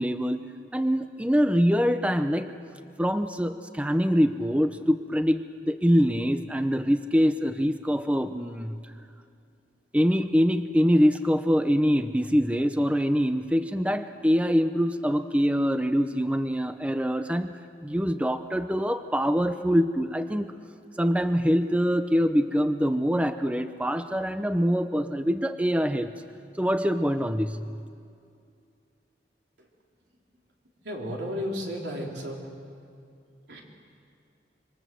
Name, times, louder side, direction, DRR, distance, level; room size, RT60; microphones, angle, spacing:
voice 1, 0.0-2.5 3.0-8.8 9.9-20.5 21.0-26.1 26.6-27.7, equal, 5° right, 9 dB, 0.7 m, -24 dB
voice 2, 30.8-32.4 33.5-33.6, equal, 90° right, -1 dB, 3.8 m, -33 dB
27.0 x 25.0 x 7.7 m, 2.4 s
head